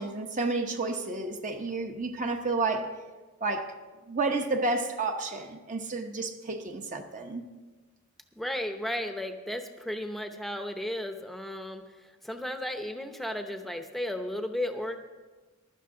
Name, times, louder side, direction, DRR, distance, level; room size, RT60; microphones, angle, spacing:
voice 1, 0.0-2.9 3.4-3.7 4.1-7.4, right 3 dB, 35° right, 5 dB, 0.9 m, -31 dB
voice 2, 8.4-11.8 12.2-15.0, left 1 dB, ahead, 6 dB, 0.8 m, -34 dB
15.5 x 12.0 x 3.8 m, 1.3 s
head